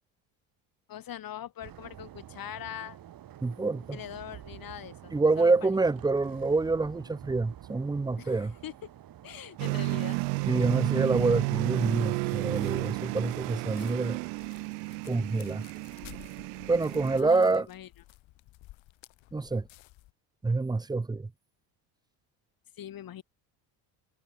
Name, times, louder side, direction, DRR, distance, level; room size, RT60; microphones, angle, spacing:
voice 1, 0.9-3.0 3.9-5.7 8.2-8.9 9.2-10.2 17.1-17.9 22.8-23.2, left 11 dB, 45° left, 1.6 m, -42 dB
sound 1, 1.6-14.2, right 11 dB, 45° right, 1.5 m, -48 dB
voice 2, 3.4-4.0 5.1-8.5 10.4-14.2 15.1-15.6 16.7-17.7 19.3-19.7 20.4-21.3, right 3 dB, 10° right, 0.6 m, -27 dB
sound 2, 9.6-17.2, right 35 dB, 85° right, 0.9 m, -32 dB
sound 3, 12.3-20.1, left 17 dB, 65° left, 4.0 m, -54 dB
supercardioid pair, 85°, 49 cm